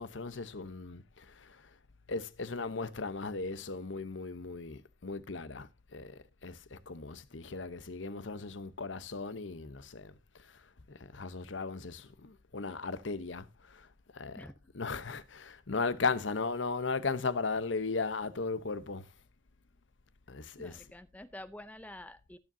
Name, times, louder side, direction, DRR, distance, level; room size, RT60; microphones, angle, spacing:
voice 1, 0.0-1.6 2.1-6.1 6.4-10.1 10.9-13.9 14.1-14.4 14.7-19.0 20.3-20.8, left 4 dB, 75° left, 0.9 m, -37 dB
voice 2, 20.6-22.4, left 1 dB, 10° left, 0.5 m, -48 dB
17.0 x 7.6 x 2.7 m
head